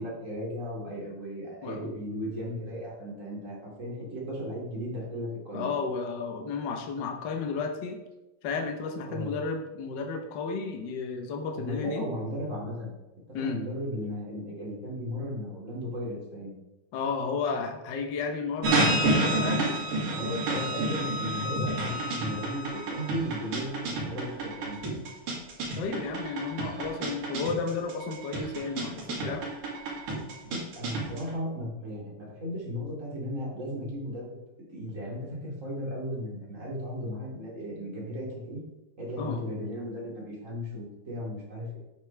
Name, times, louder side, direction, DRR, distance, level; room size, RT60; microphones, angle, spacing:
voice 1, 0.0-5.7 9.1-9.3 11.5-12.9 13.4-16.5 20.1-25.1 30.4-34.4 34.7-38.6 39.0-41.8, equal, 25° right, -4 dB, 2.6 m, -36 dB
voice 2, 5.5-8.0 8.4-12.1 13.3-13.6 16.9-19.7 25.8-29.4 39.2-39.4, left 4 dB, 85° left, 3 dB, 0.9 m, -33 dB
sound 1, 18.6-31.3, right 2 dB, 85° right, 3.8 m, -29 dB
9.6 x 7.3 x 3.4 m, 1.0 s
omnidirectional pair, 3.6 m